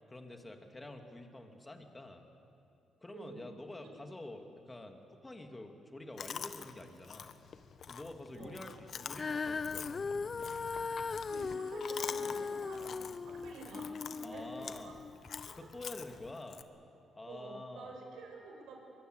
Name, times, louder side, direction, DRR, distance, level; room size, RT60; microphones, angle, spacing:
voice 1, 0.1-2.3 3.0-7.4 7.9-10.1 14.2-14.9 15.5-16.6 17.1-17.9, left 2 dB, 15° left, 4 dB, 2.6 m, -48 dB
Chewing mastication, 6.2-16.6, left 7 dB, 55° left, 1.0 m, -47 dB
voice 2, 8.3-8.6 11.3-15.0 15.4-15.6 17.3-18.8, right 3 dB, 85° right, 2 dB, 5.6 m, -49 dB
Female singing, 9.1-15.5 16.2-16.3, left 4 dB, 35° left, 0.5 m, -39 dB
23.0 x 21.5 x 8.2 m, 2.7 s
cardioid pair, 90°, 0 cm